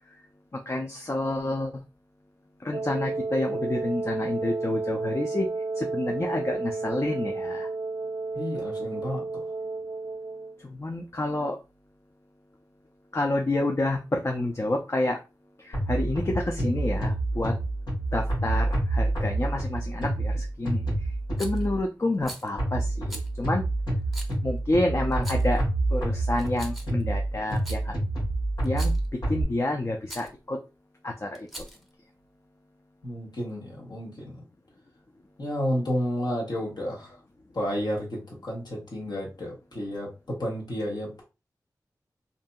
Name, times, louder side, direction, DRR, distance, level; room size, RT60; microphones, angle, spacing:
voice 1, 0.7-1.7 2.6-5.5 5.8-7.7 10.6-11.6 13.1-15.2 15.6-17.6 18.1-20.8 21.4-23.6 24.4-25.6 25.9-28.0 28.6-28.9 29.3-30.6 31.0-31.5, left 2 dB, 35° left, 2 dB, 0.4 m, -29 dB
Wind instrument woodwind instrument, 2.7-10.6, right 3 dB, 45° right, 0.4 m, -32 dB
voice 2, 8.3-9.4 33.0-34.4 35.4-37.1 37.5-41.2, equal, 70° left, -3 dB, 1.2 m, -31 dB
sound 1, 15.7-21.8 22.6-29.4, right 2 dB, 85° left, 1.3 m, -27 dB
Rattle, 21.4-21.7 22.2-22.5 23.1-23.3 24.1-24.3 25.1-25.6 26.3-27.0 27.5-27.8 28.6-29.1 30.1-30.3 31.3-31.9, right 1 dB, ahead, 0.7 m, -41 dB
2.8 x 2.5 x 2.2 m, 0.28 s
cardioid pair, 45°, 8 cm